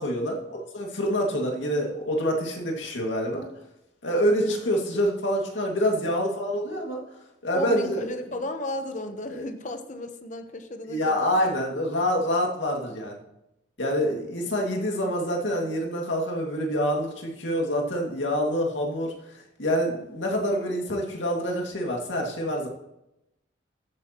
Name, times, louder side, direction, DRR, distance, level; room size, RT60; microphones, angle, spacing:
voice 1, 0.0-3.5 4.0-7.0 7.4-8.1 9.3-9.4 10.8-13.2 13.8-22.7, equal, 85° left, 0 dB, 2.2 m, -26 dB
voice 2, 7.5-11.4, left 1 dB, 40° left, 7 dB, 0.9 m, -34 dB
14.0 x 9.1 x 3.0 m, 0.89 s
head